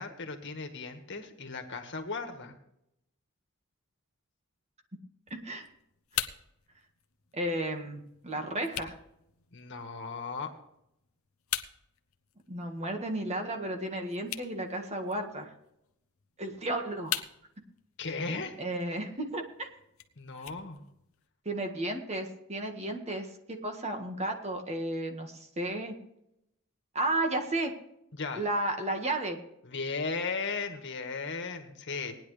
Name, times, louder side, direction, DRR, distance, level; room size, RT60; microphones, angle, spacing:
voice 1, 0.0-2.5 9.5-10.5 18.0-18.6 20.2-20.8 28.1-28.4 29.6-32.2, left 4 dB, 55° left, 5 dB, 1.8 m, -36 dB
sound 1, 5.3-21.3, left 12 dB, 80° left, 0.9 m, -43 dB
voice 2, 5.3-5.7 7.3-9.0 12.5-15.5 16.4-17.2 18.6-19.7 21.5-26.0 26.9-27.7 28.4-29.4, right 1 dB, 30° right, 4 dB, 1.7 m, -33 dB
18.5 x 10.0 x 3.3 m, 0.78 s
head